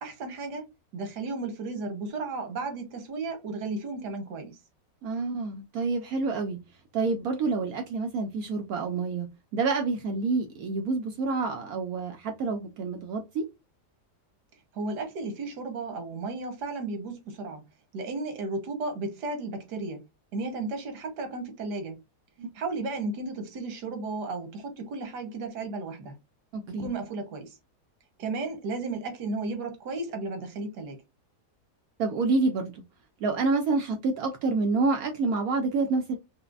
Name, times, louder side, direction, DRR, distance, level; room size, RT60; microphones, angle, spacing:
voice 1, 0.0-0.6 0.9-4.6 14.7-17.6 17.9-20.0 20.3-22.0 22.5-26.2 26.8-27.6 28.2-31.0, right 3 dB, 85° right, 1.5 m, -34 dB
voice 2, 5.0-6.6 6.9-9.3 9.5-13.5 22.4-22.5 26.5-26.9 32.0-32.8 33.2-36.2, right 3 dB, 70° right, 1.0 m, -28 dB
4.9 x 2.1 x 2.3 m
omnidirectional pair, 1.7 m